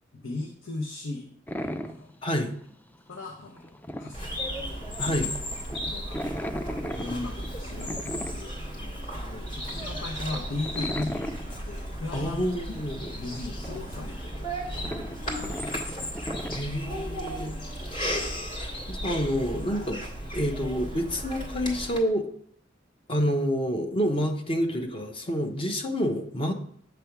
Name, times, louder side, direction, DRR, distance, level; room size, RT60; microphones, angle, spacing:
voice 1, 0.1-1.3 1.6-2.1 3.1-5.0 5.8-6.2 6.6-12.8 13.1-14.9 15.3-16.1, left 2 dB, 85° left, 0 dB, 0.8 m, -38 dB
sound 1, 1.5-2.2 2.5-3.0 3.2-3.3 3.6-5.0 5.3-9.0 9.4-9.5 9.8-11.6 12.0-12.1 12.5-12.8 13.0-16.6, equal, 10° left, 0.3 m, -36 dB
voice 2, 2.2-2.5 5.0-5.3 12.1-13.1 16.5-17.6 18.1-18.3 18.9-20.0 20.3-22.3 23.1-26.5, equal, 30° left, 4 dB, 0.7 m, -28 dB
Bird vocalization bird call bird song, 4.1-22.0, equal, 45° left, 2.0 m, -35 dB
7.8 x 3.4 x 5.8 m, 0.62 s
head